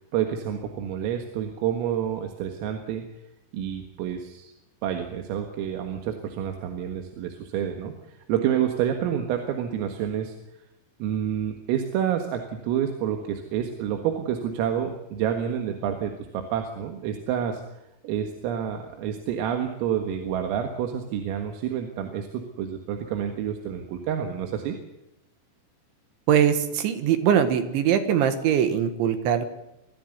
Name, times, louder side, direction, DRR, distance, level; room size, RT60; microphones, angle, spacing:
voice 1, 0.1-3.0 3.5-4.5 4.8-7.9 8.3-10.4 11.0-17.6 18.0-24.8, right 9 dB, 85° right, 4 dB, 4.3 m, -28 dB
voice 2, 26.3-29.5, right 9 dB, 70° right, 9 dB, 3.7 m, -22 dB
23.5 x 14.5 x 9.6 m, 0.89 s
omnidirectional pair, 5.9 m